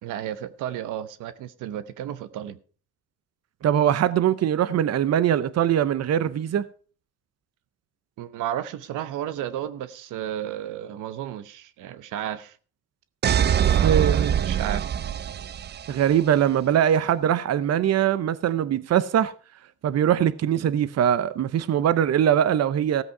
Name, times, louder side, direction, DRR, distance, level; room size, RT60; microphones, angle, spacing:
voice 1, 0.0-2.6 8.2-12.6 13.7-14.8, right 11 dB, 90° right, 0.9 m, -33 dB
voice 2, 3.6-6.6 13.6-14.3 15.9-19.3 19.8-23.0, right 10 dB, 55° right, 0.8 m, -22 dB
sound 1, 13.2-16.1, right 9 dB, 35° right, 0.4 m, -23 dB
15.0 x 8.2 x 4.7 m
cardioid pair, 90°, 30 cm